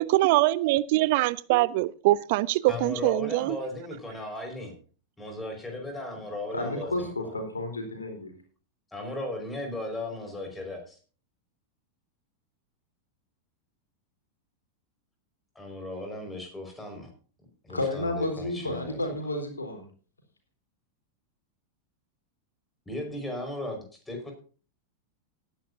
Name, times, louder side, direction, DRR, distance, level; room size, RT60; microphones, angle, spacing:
voice 1, 0.0-3.6, right 18 dB, 50° right, 20 dB, 0.4 m, -23 dB
voice 2, 2.7-4.8 5.2-7.1 8.9-11.0 15.6-17.1 17.6-19.1 22.9-24.3, left 1 dB, 10° left, 3 dB, 5.2 m, -36 dB
voice 3, 6.5-8.3 17.7-19.8, left 2 dB, 80° left, 4 dB, 3.8 m, -31 dB
18.0 x 10.5 x 2.7 m, 0.38 s
figure-of-eight pair, 90°, 0 cm